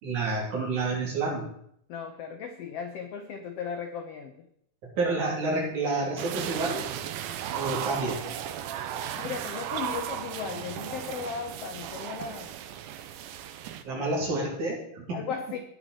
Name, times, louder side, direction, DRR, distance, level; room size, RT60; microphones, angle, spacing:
voice 1, 0.0-1.5 5.0-6.8 7.5-8.2 13.8-15.0, right 3 dB, 65° right, -3 dB, 4.4 m, -29 dB
voice 2, 1.9-4.4 9.1-12.5 13.9-14.2 15.1-15.6, left 6 dB, 75° left, 6 dB, 1.4 m, -36 dB
sound 1, 6.2-13.8, right 10 dB, 80° right, 2.2 m, -35 dB
17.5 x 6.0 x 4.2 m, 0.71 s
omnidirectional pair, 3.8 m